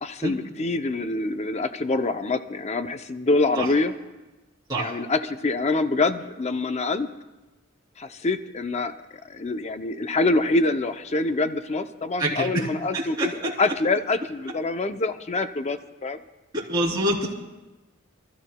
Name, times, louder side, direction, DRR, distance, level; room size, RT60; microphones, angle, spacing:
voice 1, 0.0-3.9 4.8-7.1 8.0-8.9 9.2-16.2, left 3 dB, 35° left, 9 dB, 0.5 m, -25 dB
voice 2, 12.2-12.7 12.9-13.5 16.5-17.3, right 1 dB, 20° right, -6 dB, 3.0 m, -26 dB
28.5 x 13.5 x 2.2 m, 1.1 s
head